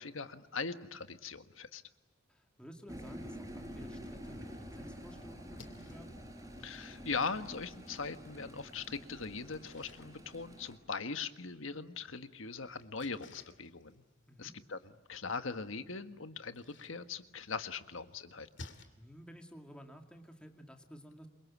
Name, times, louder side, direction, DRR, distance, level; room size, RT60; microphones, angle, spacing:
voice 1, 0.0-1.8 6.6-14.0 14.4-14.8 15.1-18.5, left 4 dB, 80° left, 10 dB, 1.5 m, -40 dB
voice 2, 2.3-6.2 14.3-14.6 19.0-21.3, equal, 5° left, 4 dB, 2.2 m, -53 dB
sound 1, 2.9-10.8, equal, 15° right, 4.8 m, -48 dB
Splash splatter, 5.4-18.8, left 2 dB, 60° left, 2.6 m, -59 dB
28.0 x 24.0 x 8.6 m, 1.0 s
head